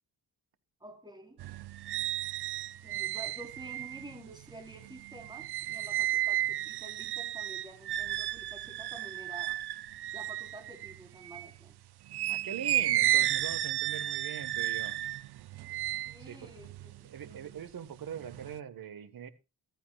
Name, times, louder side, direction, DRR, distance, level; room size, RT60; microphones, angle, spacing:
voice 1, 0.8-1.4 2.8-9.6 10.1-11.8 16.1-17.5, right 1 dB, 10° right, 4.4 m, -50 dB
sound 1, 1.4-11.6 12.1-17.6 18.0-18.6, right 13 dB, 90° right, 0.6 m, -33 dB
voice 2, 12.3-15.0 16.3-16.5 17.0-19.3, right 8 dB, 65° right, 1.6 m, -42 dB
15.5 x 14.5 x 2.4 m
cardioid pair, 95°, 38 cm